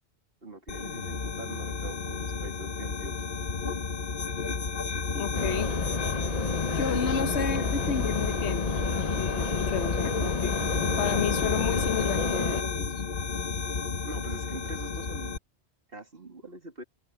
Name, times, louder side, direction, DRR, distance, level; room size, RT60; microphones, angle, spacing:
voice 1, 0.4-3.1 7.1-7.2 14.0-15.4 15.9-16.8, right 2 dB, 60° right, 3.3 m, -43 dB
sound 1, 0.7-15.4, left 5 dB, 55° left, 1.3 m, -31 dB
voice 2, 5.1-5.7 6.8-8.7 9.2-10.6 11.0-12.9, left 7 dB, 85° left, 1.3 m, -31 dB
sound 2, 5.3-12.6, left 3 dB, 35° left, 1.2 m, -31 dB
omnidirectional pair, 1.1 m